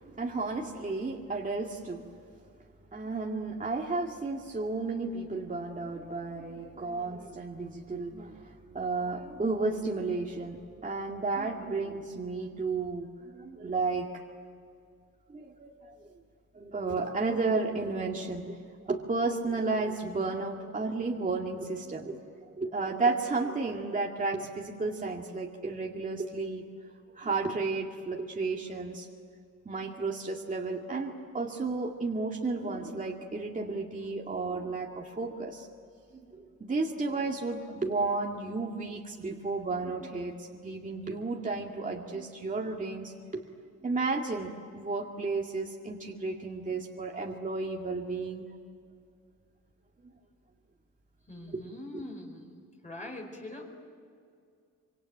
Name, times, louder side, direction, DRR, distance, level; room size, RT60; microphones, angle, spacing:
voice 1, 0.0-2.0 2.9-14.1 15.3-15.7 16.5-18.6 18.9-22.2 22.6-26.7 27.2-29.1 29.7-35.7 36.3-43.4 43.8-48.4 51.4-52.0, right 3 dB, 25° right, 0 dB, 2.1 m, -33 dB
voice 2, 51.3-53.8, left 2 dB, 25° left, -1 dB, 4.8 m, -43 dB
25.5 x 25.0 x 9.0 m, 2.3 s
cardioid pair, 125°, 31 cm